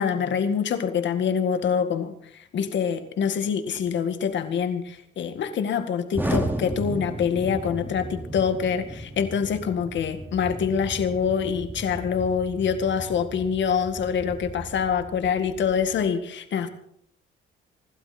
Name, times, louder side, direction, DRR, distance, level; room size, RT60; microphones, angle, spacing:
voice 1, 0.0-16.7, left 7 dB, 65° left, 8 dB, 2.0 m, -25 dB
Explosion, 6.1-16.1, right 1 dB, 10° right, 2.6 m, -35 dB
25.0 x 12.5 x 4.4 m, 0.70 s
cardioid pair, 90°, 20 cm